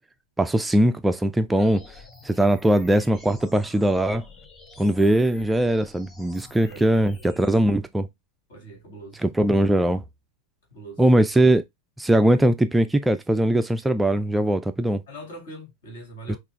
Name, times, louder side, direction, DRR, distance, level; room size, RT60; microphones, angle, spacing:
voice 1, 0.4-1.8 2.2-4.2 4.8-8.1 9.2-10.0 11.0-11.6 12.0-15.0 16.3-16.4, right 1 dB, 5° right, 0.3 m, -20 dB
sound 1, 1.6-7.6, left 3 dB, 10° left, 2.8 m, -48 dB
voice 2, 6.7-7.0 8.5-9.2 10.7-11.0 15.1-16.4, right 1 dB, 60° left, 2.1 m, -42 dB
5.9 x 2.4 x 3.3 m
figure-of-eight pair, 90°, 0 cm